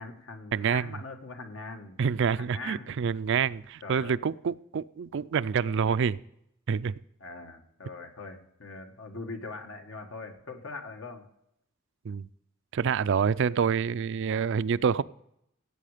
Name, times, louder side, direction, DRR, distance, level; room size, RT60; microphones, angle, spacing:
voice 1, 0.0-2.0 2.4-3.0 3.8-4.1 7.2-11.3, left 3 dB, 70° left, 5 dB, 1.7 m, -41 dB
voice 2, 0.5-0.9 2.0-6.2 6.7-6.9 12.0-12.3 12.7-15.0, right 6 dB, 60° right, 16 dB, 0.4 m, -27 dB
16.5 x 8.4 x 5.0 m, 0.79 s
head